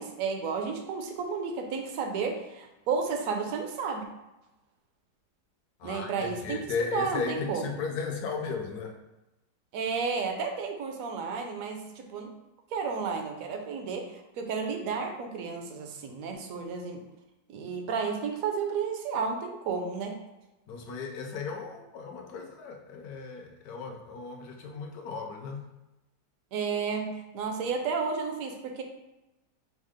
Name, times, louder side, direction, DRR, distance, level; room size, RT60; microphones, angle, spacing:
voice 1, 0.0-4.0 5.8-6.6 6.9-7.7 9.7-12.3 12.7-17.0 17.5-20.1 26.5-27.1 27.3-28.8, right 5 dB, 65° right, 3 dB, 0.9 m, -32 dB
voice 2, 5.8-9.0 20.7-25.6, left 5 dB, 70° left, 3 dB, 1.1 m, -35 dB
5.4 x 2.0 x 4.8 m, 0.99 s
omnidirectional pair, 1.9 m